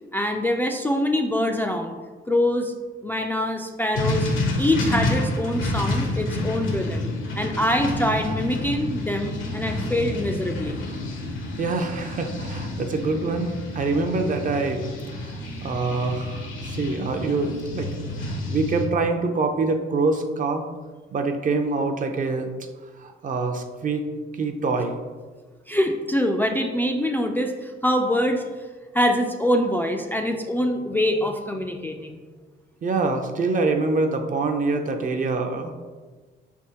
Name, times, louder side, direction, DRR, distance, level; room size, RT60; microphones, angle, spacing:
voice 1, 0.1-2.0 2.3-2.7 3.0-4.3 4.6-7.1 7.4-10.8 25.7-28.5 28.9-32.2, left 1 dB, 10° left, 2 dB, 0.3 m, -24 dB
sound 1, 3.9-18.9, left 1 dB, 80° left, 0.9 m, -29 dB
voice 2, 11.6-14.8 15.2-20.6 21.1-22.5 23.0-24.0 24.4-25.0 32.8-35.7, right 3 dB, 40° right, 5 dB, 0.5 m, -25 dB
5.3 x 3.5 x 2.8 m, 1.4 s
cardioid pair, 90°, 20 cm